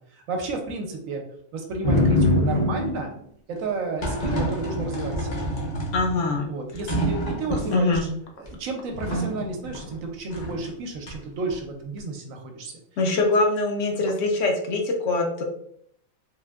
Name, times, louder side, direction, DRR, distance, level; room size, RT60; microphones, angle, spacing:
voice 1, 0.1-1.2 1.5-3.1 3.5-5.5 6.5-7.9 8.4-12.7, right 3 dB, 75° right, 3 dB, 1.0 m, -32 dB
sound 1, 1.8-3.1 4.0-6.4 6.7-8.0 8.4-8.5 8.9-9.9 10.3-10.7 11.1-11.6, left 1 dB, 40° left, 0.6 m, -25 dB
voice 2, 5.9-6.5 7.5-8.1 13.0-15.4, left 2 dB, 65° left, 1 dB, 0.9 m, -23 dB
3.5 x 2.5 x 2.3 m, 0.68 s
omnidirectional pair, 1.5 m